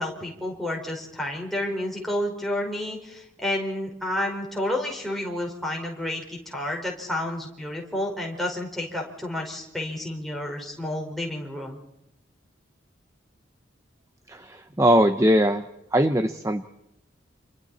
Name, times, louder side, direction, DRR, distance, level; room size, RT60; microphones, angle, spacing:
voice 1, 0.0-11.8, left 1 dB, ahead, -1 dB, 5.0 m, -30 dB
voice 2, 14.3-15.6 15.9-16.7, equal, 15° right, 9 dB, 0.8 m, -21 dB
30.0 x 27.5 x 4.3 m, 0.85 s
head